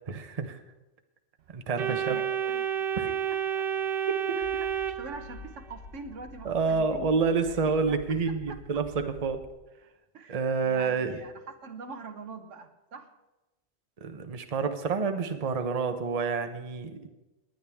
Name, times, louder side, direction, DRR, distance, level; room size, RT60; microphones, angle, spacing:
voice 1, 0.1-0.6 1.5-2.2 3.0-3.1 4.1-4.4 6.4-9.4 10.3-11.2 14.0-17.1, right 5 dB, 35° right, 8 dB, 0.9 m, -28 dB
Organ, 1.8-5.7, right 8 dB, 60° right, 0.7 m, -30 dB
voice 2, 1.8-2.7 3.1-3.7 4.3-8.6 10.1-13.1, right 4 dB, 80° right, 7 dB, 1.5 m, -44 dB
sound 1, 4.4-9.5, left 2 dB, 35° left, 1.4 m, -48 dB
18.5 x 10.5 x 3.5 m, 1.0 s
omnidirectional pair, 1.3 m